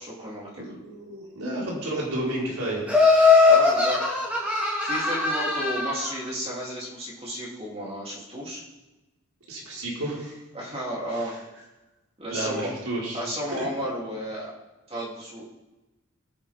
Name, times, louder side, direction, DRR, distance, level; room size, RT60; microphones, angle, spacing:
voice 1, 0.0-0.7 3.4-4.0 4.8-8.6 10.5-11.3 12.2-12.7 13.1-14.5 14.9-15.4, equal, 30° right, -5 dB, 3.4 m, -33 dB
voice 2, 0.6-2.8 9.5-10.3 11.1-11.4 12.3-13.2 13.5-13.6, right 1 dB, 90° right, -5 dB, 5.1 m, -31 dB
Laughter, 2.9-6.1, left 4 dB, 5° right, 2.9 m, -20 dB
22.0 x 10.0 x 3.8 m, 1.1 s
head